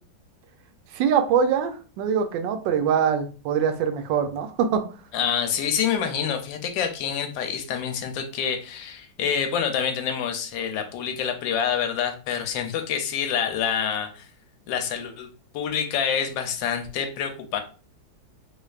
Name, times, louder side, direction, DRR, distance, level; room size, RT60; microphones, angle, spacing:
voice 1, 0.9-4.9, right 7 dB, 80° right, 8 dB, 1.3 m, -23 dB
voice 2, 5.1-14.3 14.7-15.3 15.5-17.6, left 8 dB, 80° left, 6 dB, 1.3 m, -27 dB
3.3 x 3.2 x 2.4 m, 0.37 s
omnidirectional pair, 2.0 m